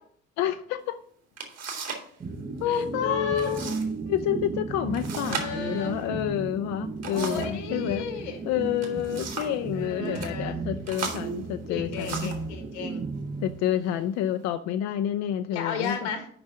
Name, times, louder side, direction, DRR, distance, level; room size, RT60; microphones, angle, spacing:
voice 1, 0.4-1.0 2.7-3.8 4.1-8.0 8.4-12.3 13.4-16.1, left 11 dB, 50° left, 9 dB, 0.5 m, -29 dB
sound 1, 0.9-1.0 1.4-2.1 2.4-2.9 3.4-3.9 4.2-4.3 4.9-7.6 8.6-9.6 10.1-10.3 10.9-12.5 13.3-13.4 14.0-14.5, right 5 dB, 45° right, 2.1 m, -37 dB
sound 2, 2.2-14.1, right 4 dB, 20° right, 0.7 m, -35 dB
voice 2, 2.6-3.6 5.3-5.9 7.0-8.4 9.7-10.6 11.7-13.0 13.8-14.0 15.5-16.3, left 7 dB, 75° left, 6 dB, 1.5 m, -32 dB
6.9 x 5.3 x 6.2 m, 0.64 s
figure-of-eight pair, 50°, 36 cm